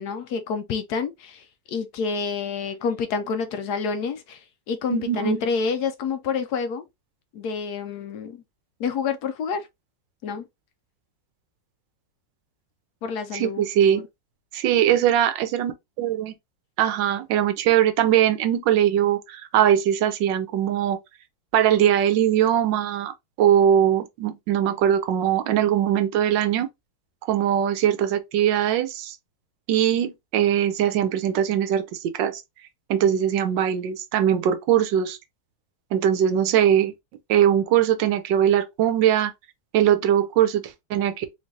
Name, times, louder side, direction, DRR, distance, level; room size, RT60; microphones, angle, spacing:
voice 1, 0.0-6.9 7.3-8.4 8.8-9.7 10.2-10.5 13.0-13.6 13.9-14.0, left 5 dB, 70° left, 1.0 m, -28 dB
voice 2, 4.9-5.4 13.3-14.0 14.5-15.7 16.0-16.3 16.8-21.0 21.5-23.1 23.4-26.7 27.3-29.2 29.7-32.4 32.9-35.2 35.9-36.9 37.3-39.3 39.7-40.6 40.9-41.3, right 10 dB, 85° right, 1.3 m, -21 dB
3.8 x 3.2 x 2.6 m
omnidirectional pair, 1.9 m